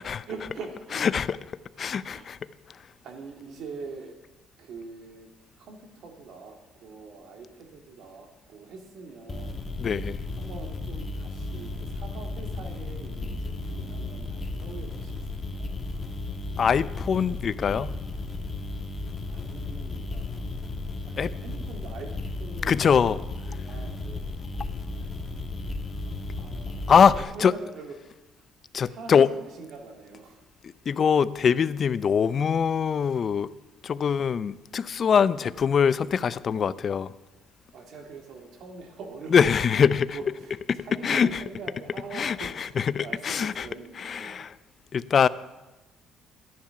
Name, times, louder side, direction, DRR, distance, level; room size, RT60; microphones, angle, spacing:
voice 1, 0.1-1.3 1.7-2.3 3.0-4.2 4.6-5.3 5.6-9.6 10.4-15.7 19.3-20.5 21.0-23.1 23.5-24.4 26.3-26.9 27.1-28.4 28.8-30.4 35.2-35.4 37.7-39.5 39.8-44.5, right 4 dB, 65° right, 2.3 m, -43 dB
voice 2, 1.0-1.4 1.8-2.4 2.7-2.8 9.8-10.2 16.6-18.0 21.2-21.3 22.6-23.2 26.9-27.5 28.7-29.3 30.9-33.5 33.8-37.1 39.3-40.2 40.7-40.8 41.0-41.3 42.1-43.7 44.0-44.5 44.9-45.3, left 7 dB, 40° left, 0.5 m, -23 dB
sound 1, 9.3-27.2, left 2 dB, 25° left, 1.3 m, -34 dB
12.5 x 10.5 x 5.8 m
cardioid pair, 110°, 0 cm